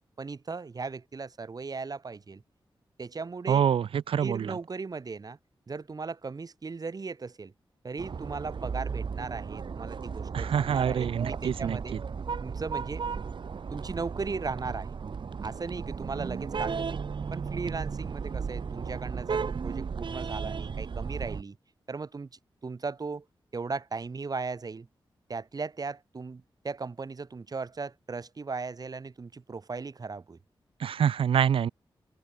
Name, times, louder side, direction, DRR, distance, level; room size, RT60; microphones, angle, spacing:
voice 1, 0.2-2.4 3.0-3.7 4.2-5.4 5.7-7.5 7.8-12.0 12.4-13.0 13.7-15.0 15.4-17.0 17.3-21.6 21.9-22.3 22.6-23.2 23.5-24.9 25.3-30.4, right 4 dB, 45° right, 2.6 m, -37 dB
voice 2, 3.5-4.6 10.3-12.0 30.8-31.7, right 8 dB, 90° right, 0.6 m, -26 dB
sound 1, 8.0-21.4, right 5 dB, 60° right, 2.0 m, -35 dB
open air
wide cardioid pair, 95°, 9 cm